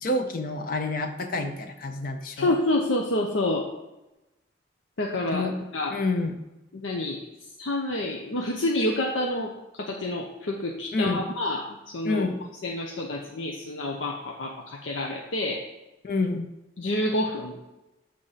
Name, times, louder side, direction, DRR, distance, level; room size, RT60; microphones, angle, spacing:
voice 1, 0.0-2.6 5.3-5.5 5.9-6.4 10.9-11.2 12.0-12.4 16.0-16.5, left 2 dB, 50° left, 6 dB, 0.6 m, -28 dB
voice 2, 2.4-3.7 5.0-6.0 6.7-7.2 7.6-9.5 9.8-12.3 12.6-15.6 16.8-17.6, left 1 dB, 90° left, 0 dB, 0.7 m, -28 dB
6.8 x 3.7 x 5.6 m, 0.98 s
head